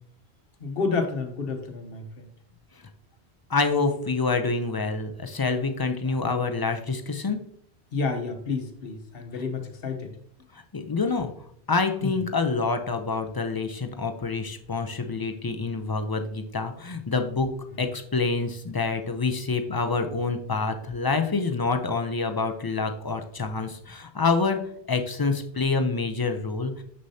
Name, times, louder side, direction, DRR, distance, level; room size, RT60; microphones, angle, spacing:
voice 1, 0.6-2.3 6.0-6.2 7.9-10.1 12.0-12.2 17.7-17.8, left 4 dB, 60° left, 6 dB, 1.1 m, -30 dB
voice 2, 3.5-7.4 10.7-11.3 11.7-17.5 17.8-24.6 24.9-26.8, left 4 dB, 35° left, 6 dB, 0.3 m, -27 dB
6.7 x 6.4 x 2.7 m, 0.64 s
omnidirectional pair, 1.1 m